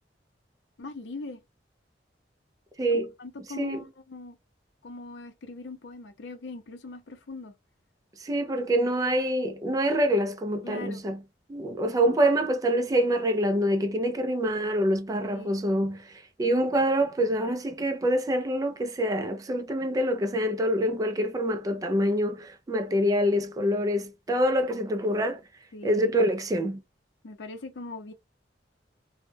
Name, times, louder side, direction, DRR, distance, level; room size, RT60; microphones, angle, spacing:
voice 1, 0.8-1.4 3.2-4.4 4.8-7.5 8.8-8.9 10.6-11.0 15.2-15.6 25.7-26.2 27.2-28.1, left 3 dB, 80° left, 0.5 m, -41 dB
voice 2, 8.2-11.2 11.5-16.1 16.4-25.4 25.8-26.8, equal, 20° right, 0.3 m, -26 dB
2.1 x 2.1 x 3.1 m
head